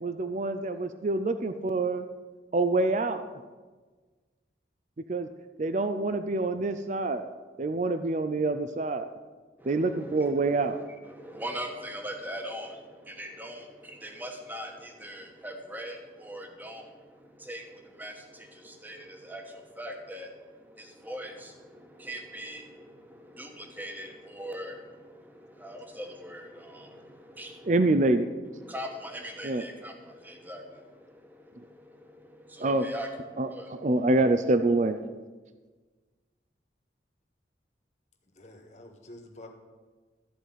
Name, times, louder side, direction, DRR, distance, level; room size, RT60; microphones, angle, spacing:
voice 1, 0.0-2.0 2.5-3.2 5.1-5.3 5.6-7.3 7.6-9.1 9.7-10.8 27.7-28.3 29.4-29.6 32.6-32.9 33.4-35.0, right 2 dB, 40° right, 10 dB, 0.5 m, -26 dB
voice 2, 9.6-28.0 28.5-34.0, equal, 10° right, 3 dB, 1.2 m, -42 dB
voice 3, 38.3-39.5, left 1 dB, 40° left, 3 dB, 1.6 m, -48 dB
14.0 x 4.9 x 9.1 m, 1.4 s
head